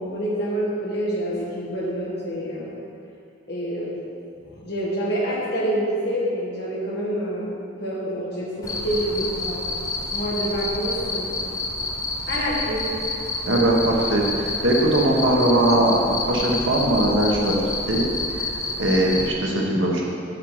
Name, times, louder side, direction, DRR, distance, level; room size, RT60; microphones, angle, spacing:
voice 1, 0.0-2.7 3.5-4.0 4.5-7.5 7.8-9.7 10.1-11.3 12.3-12.9, equal, 55° left, -5 dB, 1.9 m, -27 dB
Cricket, 8.6-19.3, left 2 dB, 15° left, 0.7 m, -29 dB
voice 2, 13.4-17.5 17.9-18.0 18.3-18.4 18.8-20.0, right 1 dB, 85° right, -2 dB, 1.4 m, -20 dB
7.3 x 6.7 x 5.0 m, 2.6 s
head